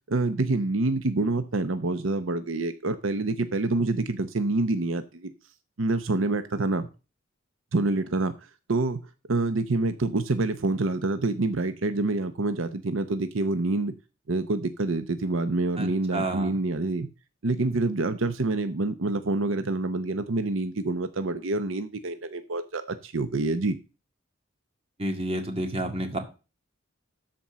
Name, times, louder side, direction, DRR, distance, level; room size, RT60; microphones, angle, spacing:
voice 1, 0.1-5.3 5.8-6.9 7.7-8.3 8.7-9.0 9.3-13.9 14.3-17.1 17.4-23.8, right 2 dB, 75° right, 0.8 m, -27 dB
voice 2, 15.8-16.6 25.0-26.2, right 1 dB, 30° right, 2.0 m, -30 dB
13.0 x 4.5 x 6.2 m
head